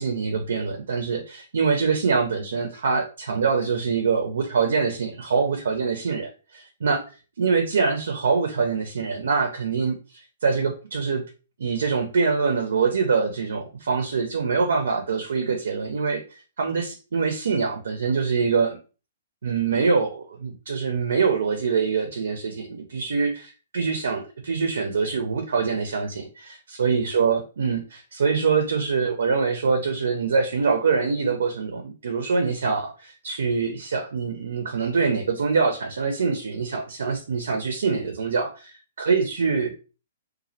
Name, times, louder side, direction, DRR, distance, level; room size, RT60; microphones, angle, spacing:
voice 1, 0.0-7.0 7.4-10.0 10.4-11.2 11.6-16.2 16.6-18.8 19.4-39.7, right 5 dB, 70° right, 5 dB, 0.4 m, -24 dB
2.3 x 2.0 x 2.6 m, 0.34 s
figure-of-eight pair, 120°, 0 cm